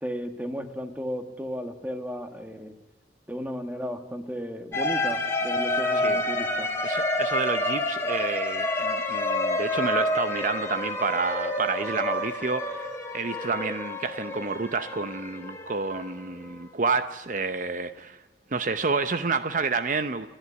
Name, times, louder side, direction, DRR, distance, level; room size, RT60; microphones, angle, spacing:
voice 1, 0.0-2.7 3.3-6.7, equal, 10° right, 7 dB, 1.6 m, -34 dB
sound 1, 4.7-16.5, left 1 dB, 15° left, 2.7 m, -28 dB
voice 2, 6.8-12.9 13.1-18.2 18.5-20.3, right 4 dB, 45° right, 10 dB, 0.7 m, -29 dB
29.0 x 11.5 x 9.5 m, 1.2 s
head